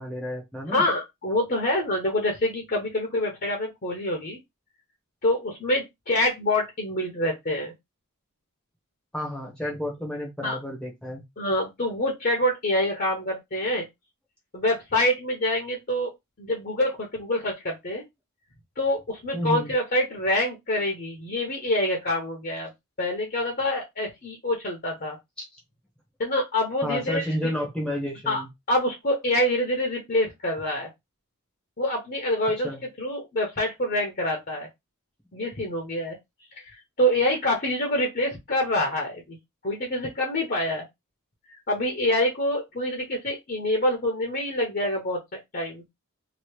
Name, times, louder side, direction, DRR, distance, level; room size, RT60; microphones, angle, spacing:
voice 1, 0.0-0.8 9.1-11.2 19.3-19.7 25.5-25.6 26.8-28.5 32.6-32.8, equal, 5° left, 0.8 m, -31 dB
voice 2, 0.7-4.4 5.2-7.7 10.4-10.6 11.4-13.8 14.5-16.1 16.4-18.0 18.8-22.7 23.0-25.2 26.2-27.2 28.3-28.4 28.7-30.9 31.8-32.7 33.0-34.7 35.3-36.2 36.6-36.7 37.0-39.4 39.6-40.8 41.5-45.2 45.5-45.8, left 1 dB, 40° left, 0.8 m, -26 dB
2.9 x 2.7 x 3.1 m
head